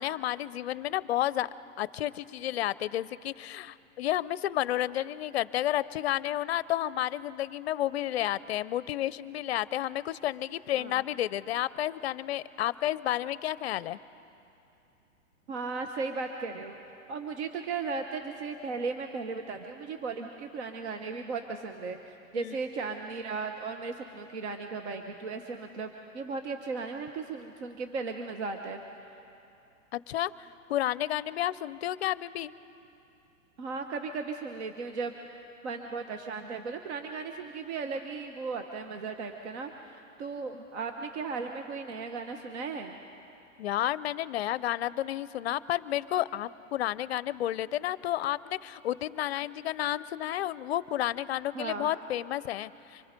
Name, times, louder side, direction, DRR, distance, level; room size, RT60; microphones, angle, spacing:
voice 1, 0.0-1.5 1.8-14.0 22.4-22.6 29.9-30.3 30.7-32.5 43.6-53.0, left 13 dB, 50° left, 18 dB, 0.5 m, -31 dB
voice 2, 15.5-16.8 17.1-28.8 33.6-43.0 51.5-51.9, right 4 dB, 55° right, 5 dB, 1.2 m, -36 dB
25.5 x 21.5 x 5.2 m, 2.8 s
hypercardioid pair, 150°, 41 cm